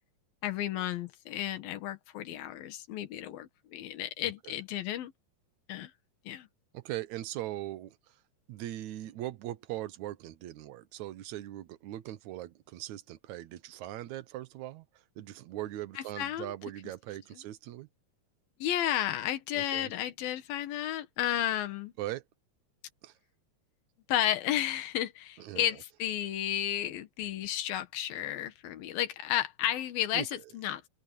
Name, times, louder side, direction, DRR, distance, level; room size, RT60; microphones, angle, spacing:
voice 1, 0.4-5.1 5.7-5.9 6.3-6.5 16.0-16.5 18.6-21.9 24.1-30.9, left 12 dB, 85° left, 3.3 m, -32 dB
voice 2, 4.2-4.6 6.7-8.0 8.5-14.9 15.2-17.9 19.5-19.9 22.0-22.2 23.0-23.1 25.4-25.7 30.1-30.3, right 14 dB, 65° right, 2.0 m, -40 dB
open air
omnidirectional pair, 4.1 m